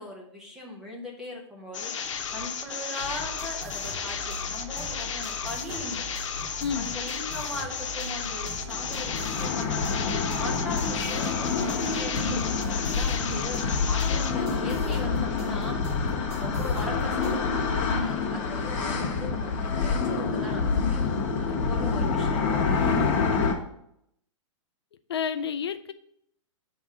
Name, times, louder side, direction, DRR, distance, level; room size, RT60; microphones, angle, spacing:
voice 1, 0.0-6.1 6.7-9.9 10.3-15.8 16.4-21.1 21.4-22.7, left 2 dB, 5° right, -2 dB, 0.6 m, -39 dB
sound 1, 1.7-14.3, left 6 dB, 70° left, 0.9 m, -34 dB
sound 2, 3.0-17.4, equal, 50° right, 1.4 m, -41 dB
voice 2, 6.6-6.9 25.1-25.9, left 7 dB, 50° left, 10 dB, 0.4 m, -30 dB
sound 3, 8.6-23.5, left 4 dB, 25° left, 1.0 m, -27 dB
7.0 x 3.7 x 5.2 m, 0.73 s
hypercardioid pair, 180°, 17 cm